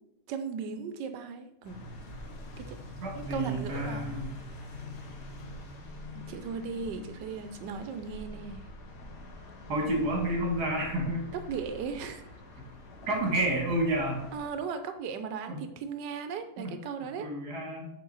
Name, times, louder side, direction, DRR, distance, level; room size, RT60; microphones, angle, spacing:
voice 1, 0.3-1.8 2.6-2.8 3.1-4.1 6.2-8.6 11.3-12.3 14.3-17.3, right 6 dB, 85° right, 9 dB, 1.3 m, -37 dB
sound 1, 1.6-14.5, left 1 dB, 75° left, 1.7 m, -44 dB
voice 2, 3.0-4.4 9.7-11.3 13.1-14.3 15.5-15.6 16.6-16.7 17.2-17.9, right 1 dB, 70° right, 1 dB, 2.0 m, -30 dB
6.6 x 4.1 x 3.9 m, 0.83 s
omnidirectional pair, 1.8 m